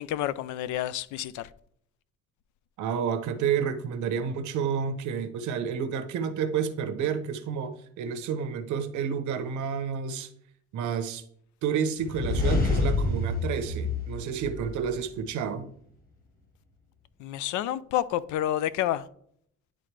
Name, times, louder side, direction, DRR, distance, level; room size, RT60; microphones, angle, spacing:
voice 1, 0.0-1.5 17.2-19.1, left 12 dB, 85° left, 0.5 m, -29 dB
voice 2, 2.8-10.3 10.7-11.2 11.6-15.6, right 7 dB, 80° right, 0.9 m, -30 dB
sound 1, 12.0-15.0, left 3 dB, 30° left, 1.4 m, -28 dB
10.5 x 3.8 x 3.3 m
cardioid pair, 145°, 29 cm